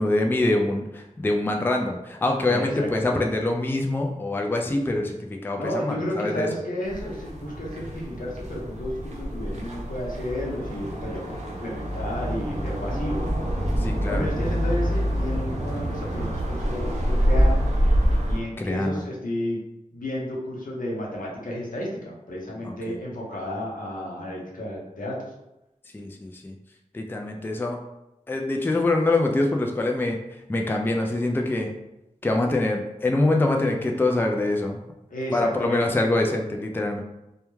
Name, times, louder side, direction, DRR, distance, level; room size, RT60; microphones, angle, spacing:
voice 1, 0.0-6.5 12.9-13.0 13.8-14.3 18.6-19.0 22.6-23.0 25.9-26.5 26.9-27.8 28.3-30.2 30.5-31.7 32.2-34.8 35.3-37.0, left 2 dB, 15° left, 2 dB, 0.3 m, -24 dB
voice 2, 2.5-3.1 5.5-13.2 14.1-17.6 18.3-19.6 19.9-25.2 35.1-35.9, left 1 dB, 75° left, -3 dB, 0.8 m, -32 dB
sound 1, 6.8-18.4, equal, 55° right, 0.6 m, -26 dB
2.2 x 2.2 x 3.1 m, 0.93 s
cardioid pair, 45°, 14 cm